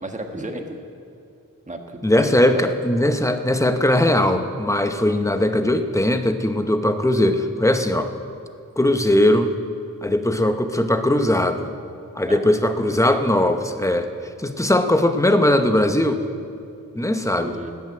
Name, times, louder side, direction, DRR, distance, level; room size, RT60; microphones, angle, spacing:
voice 1, 0.0-0.8 1.7-2.0 2.3-2.6 8.8-9.0 12.3-12.4 17.4-17.7, right 1 dB, 20° right, 3 dB, 1.4 m, -32 dB
voice 2, 2.0-8.1 8.8-9.5 10.0-11.7 12.1-14.1 14.4-16.2 16.9-17.5, left 1 dB, 10° left, 7 dB, 0.9 m, -19 dB
13.5 x 9.4 x 9.0 m, 2.4 s
wide cardioid pair, 100°, 34 cm